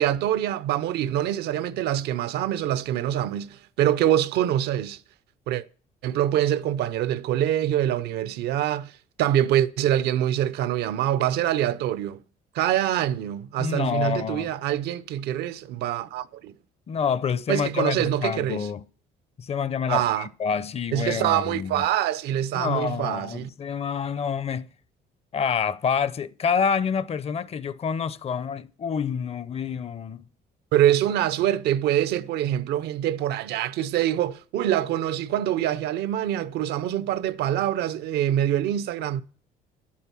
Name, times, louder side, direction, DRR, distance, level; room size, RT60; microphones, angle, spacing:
voice 1, 0.0-5.0 5.5-5.6 6.0-8.9 9.2-12.2 12.5-16.6 17.5-18.7 19.9-20.3 20.9-23.5 30.7-39.2, right 11 dB, 80° right, 0.7 m, -25 dB
voice 2, 13.6-14.5 16.9-18.8 19.4-21.9 22.5-24.7 25.3-30.2, left 6 dB, 35° left, 0.6 m, -27 dB
11.0 x 8.6 x 6.1 m
cardioid pair, 110°, 17 cm